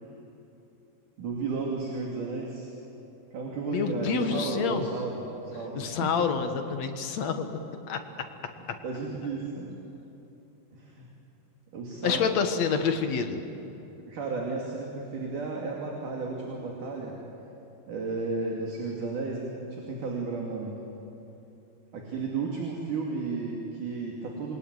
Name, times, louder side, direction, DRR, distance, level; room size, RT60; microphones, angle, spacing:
voice 1, 1.2-2.7 3.3-6.1 8.8-9.8 10.7-11.1 11.7-12.2 14.1-17.2 17.9-20.8 21.9-24.6, right 4 dB, 55° right, -1 dB, 4.0 m, -33 dB
voice 2, 3.7-4.9 5.8-8.0 8.7-8.8 12.0-13.4, left 6 dB, 55° left, 6 dB, 2.2 m, -28 dB
27.0 x 22.5 x 9.6 m, 3.0 s
omnidirectional pair, 4.4 m